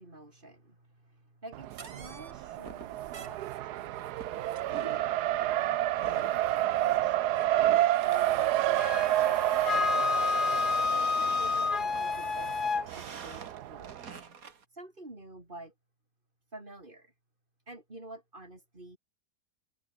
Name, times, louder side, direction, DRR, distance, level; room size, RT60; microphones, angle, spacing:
voice 1, 0.0-5.1 5.4-5.7 6.1-6.5 6.8-9.4 9.7-10.1 10.9-12.6 12.9-14.0 14.7-15.7 16.5-17.1 17.7-19.0, right 1 dB, 30° right, 5.1 m, -49 dB
Race car auto racing, 1.5-14.2, right 14 dB, 75° right, 1.2 m, -30 dB
sound 1, 1.7-14.7, right 5 dB, 60° right, 2.3 m, -47 dB
Wind instrument woodwind instrument, 8.8-12.9, left 5 dB, 35° left, 1.3 m, -29 dB
omnidirectional pair, 1.7 m